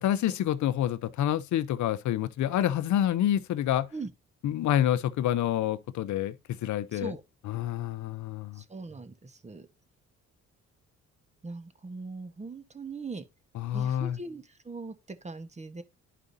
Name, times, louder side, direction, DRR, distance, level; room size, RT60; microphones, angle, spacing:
voice 1, 0.0-3.9 4.4-6.4 6.6-7.1 7.5-8.6 13.6-14.2, left 11 dB, 70° left, 0.7 m, -27 dB
voice 2, 8.5-9.7 11.4-13.2 13.7-15.8, right 3 dB, 20° right, 1.2 m, -40 dB
11.0 x 4.9 x 2.7 m
cardioid pair, 90°, 30 cm